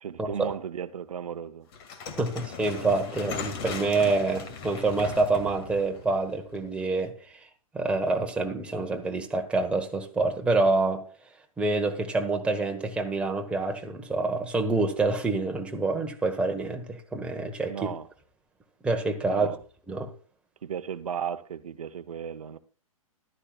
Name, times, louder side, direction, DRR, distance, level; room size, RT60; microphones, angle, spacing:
voice 1, 0.0-1.7 17.7-18.1 19.2-19.6 20.6-22.6, right 8 dB, 75° right, 0.9 m, -35 dB
sound 1, 1.7-6.9, left 6 dB, 45° left, 2.2 m, -38 dB
voice 2, 2.2-7.4 7.7-11.0 11.6-17.9 18.8-19.5 19.9-20.1, right 3 dB, 5° right, 1.2 m, -27 dB
14.5 x 12.0 x 2.4 m
hypercardioid pair, 130°, 18 cm